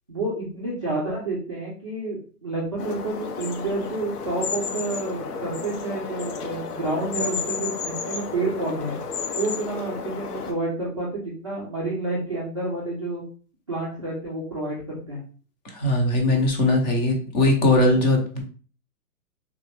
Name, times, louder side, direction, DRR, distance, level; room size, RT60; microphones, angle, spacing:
voice 1, 0.1-9.0 9.3-13.2 13.7-15.2, right 2 dB, 25° right, -8 dB, 0.3 m, -29 dB
sound 1, 2.8-10.5, left 5 dB, 70° left, 0.8 m, -32 dB
voice 2, 15.7-18.4, left 2 dB, 30° left, 2 dB, 0.7 m, -20 dB
3.2 x 2.4 x 3.2 m, 0.41 s
hypercardioid pair, 140°, 47 cm